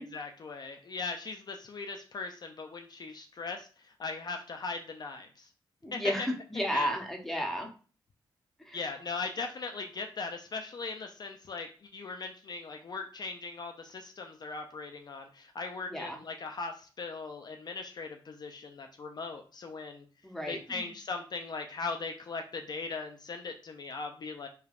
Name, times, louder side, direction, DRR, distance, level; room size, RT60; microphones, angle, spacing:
voice 1, 0.0-5.5 5.9-6.0 6.7-6.9 8.7-20.0 20.5-24.5, left 4 dB, 50° left, 4 dB, 0.3 m, -39 dB
voice 2, 5.8-7.7 8.7-8.8 15.9-16.2 20.2-20.9, equal, 5° left, 2 dB, 0.7 m, -33 dB
3.3 x 2.2 x 2.4 m, 0.38 s
cardioid pair, 75°, 9 cm